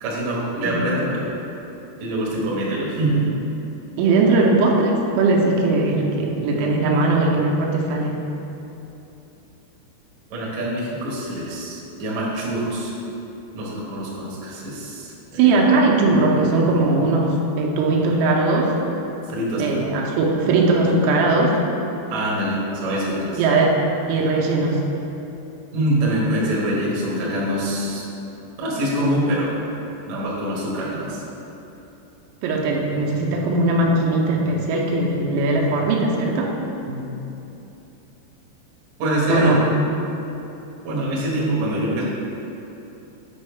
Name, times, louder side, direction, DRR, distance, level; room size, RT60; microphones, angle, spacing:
voice 1, 0.0-1.3 2.0-3.3 10.3-12.9 13.5-15.7 19.3-19.8 22.1-23.4 25.7-28.0 28.6-29.6 30.0-31.2 36.9-37.1 39.0-39.6 40.8-42.0, right 1 dB, 75° right, -6 dB, 1.7 m, -24 dB
voice 2, 4.0-8.2 15.4-18.7 19.6-21.6 23.4-23.8 24.1-24.8 32.4-36.5 39.3-39.6, right 2 dB, 90° right, -2 dB, 3.5 m, -19 dB
8.7 x 5.4 x 3.4 m, 3.0 s
omnidirectional pair, 6.0 m